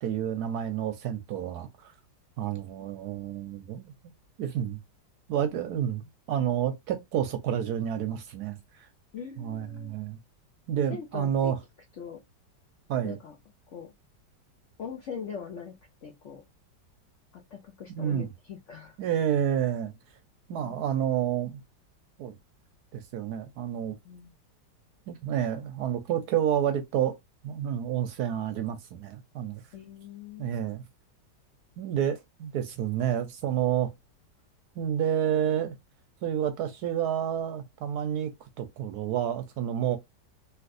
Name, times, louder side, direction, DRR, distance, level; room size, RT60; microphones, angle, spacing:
voice 1, 0.0-1.9 2.4-3.9 4.4-4.8 5.3-6.0 6.3-8.9 9.4-10.2 10.7-11.6 12.9-13.2 18.0-18.3 19.0-19.9 20.5-21.6 22.2-22.4 22.9-23.9 25.1-27.1 27.4-29.6 30.4-30.8 31.8-33.9 34.8-35.8 36.2-40.0, right 9 dB, 70° right, 1.0 m, -29 dB
voice 2, 9.1-10.0 10.9-11.5 12.0-12.2 13.0-13.4 13.7-13.9 14.8-16.4 17.3-19.0 20.5-20.8 24.0-24.4 29.7-30.6, left 7 dB, 70° left, 0.7 m, -42 dB
3.3 x 2.9 x 2.5 m
omnidirectional pair, 2.0 m